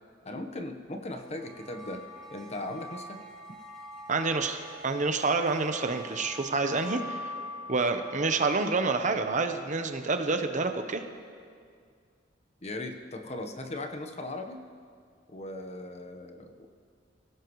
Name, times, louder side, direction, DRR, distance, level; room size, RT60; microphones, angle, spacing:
voice 1, 0.2-2.0 2.3-3.2 12.6-14.6 15.3-16.7, left 2 dB, 35° left, 5 dB, 1.1 m, -38 dB
sound 1, 1.2-9.8, left 1 dB, 5° left, 2.3 m, -44 dB
voice 2, 4.1-7.4 7.7-11.0, right 3 dB, 40° right, 7 dB, 0.9 m, -28 dB
25.0 x 17.0 x 3.2 m, 2.2 s
head